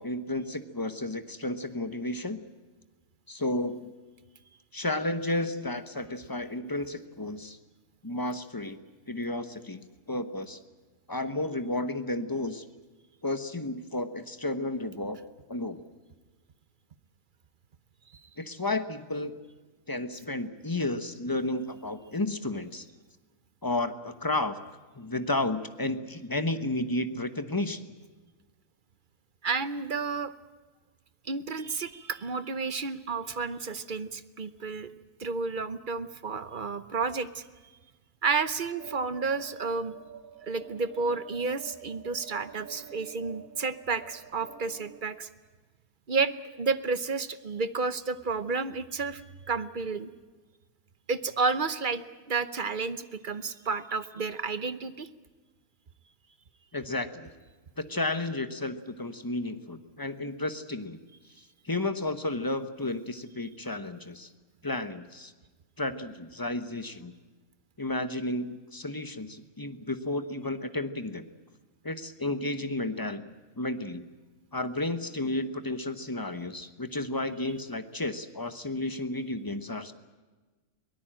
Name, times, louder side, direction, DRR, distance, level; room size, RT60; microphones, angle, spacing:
voice 1, 0.0-2.4 3.3-3.9 4.7-7.6 8.0-8.8 9.1-9.8 10.1-10.6 11.1-12.6 13.2-15.2 15.5-15.8 18.4-19.3 19.9-22.8 23.6-24.6 24.9-27.9 56.7-57.3 57.8-61.0 61.6-64.3 64.6-65.3 65.8-67.1 67.8-71.2 71.8-74.0 74.5-79.9, left 2 dB, 15° left, 10 dB, 0.9 m, -32 dB
voice 2, 29.4-30.3 31.2-34.9 35.2-37.4 38.2-39.9 40.4-45.3 46.1-49.2 49.5-50.1 51.1-55.1, right 4 dB, 40° right, 13 dB, 0.8 m, -31 dB
sound 1, 38.8-45.0, right 9 dB, 70° right, 1.6 m, -48 dB
23.0 x 18.5 x 9.0 m, 1.3 s
omnidirectional pair, 1.6 m